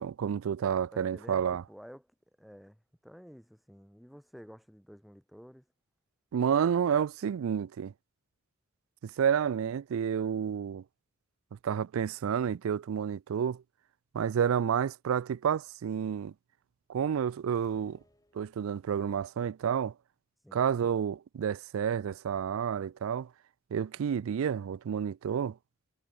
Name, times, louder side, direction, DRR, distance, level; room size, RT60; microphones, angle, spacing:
voice 1, 0.0-1.6 6.3-7.9 9.0-10.8 11.6-13.6 14.1-16.3 16.9-18.0 18.3-19.9 20.5-23.3 23.7-25.6, right 8 dB, 80° right, 0.3 m, -30 dB
voice 2, 0.9-2.1 2.4-5.7 20.4-20.7, equal, ahead, 2.6 m, -51 dB
sound 1, 17.5-19.0, left 1 dB, 15° left, 6.7 m, -65 dB
head